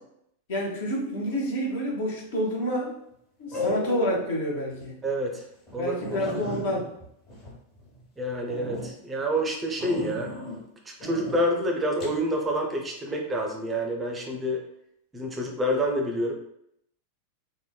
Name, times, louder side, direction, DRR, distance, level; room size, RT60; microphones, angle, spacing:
voice 1, 0.5-2.9 3.4-5.0 5.8-6.9, equal, 55° left, -1 dB, 0.8 m, -28 dB
sound 1, 1.9-2.3 3.5-4.3 4.7-4.8 5.3-5.4 5.7-5.8 6.0-8.0 8.5-8.9 9.8-10.6 11.0-11.4 12.0-12.2, left 1 dB, 35° left, 1.1 m, -35 dB
voice 2, 5.0-5.4 5.7-5.9 8.2-10.3 10.8-14.6 15.1-16.3, equal, 15° right, 1 dB, 0.5 m, -28 dB
3.5 x 2.1 x 2.2 m, 0.74 s
figure-of-eight pair, 90°, 0 cm